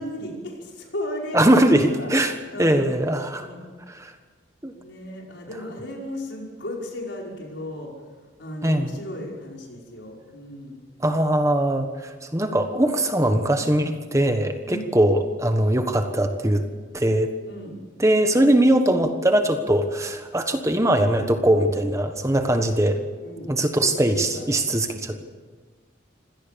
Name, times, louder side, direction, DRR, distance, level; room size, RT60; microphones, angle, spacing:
voice 1, 0.0-2.8 3.3-3.7 4.7-7.9 8.4-10.8 14.7-14.9 17.5-17.8 23.2-24.5 25.1-25.2, left 1 dB, 70° left, -1 dB, 5.5 m, -35 dB
voice 2, 1.3-2.3 2.6-3.4 4.0-4.1 4.6-4.7 8.6-8.9 11.0-16.6 16.9-17.3 18.0-23.0 23.5-25.2, right 1 dB, 15° right, 7 dB, 1.2 m, -21 dB
26.0 x 17.5 x 6.9 m, 1.4 s
head